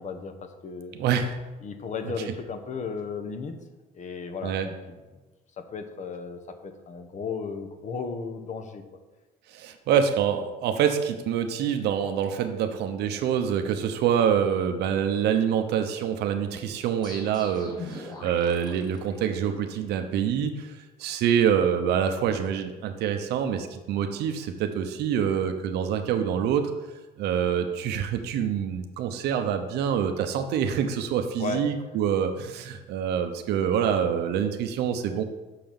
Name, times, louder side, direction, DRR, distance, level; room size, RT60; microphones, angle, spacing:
voice 1, 0.0-1.0 1.6-3.5 3.9-4.7 5.6-8.8 31.4-31.6, left 5 dB, 45° left, 7 dB, 1.1 m, -35 dB
voice 2, 0.9-1.4 2.0-2.3 4.4-4.7 9.5-26.7 27.2-35.2, right 8 dB, 80° right, 6 dB, 0.8 m, -26 dB
sound 1, 17.0-19.8, left 2 dB, 25° left, 1.8 m, -42 dB
5.9 x 5.8 x 7.0 m, 1.2 s
cardioid pair, 110°, 17 cm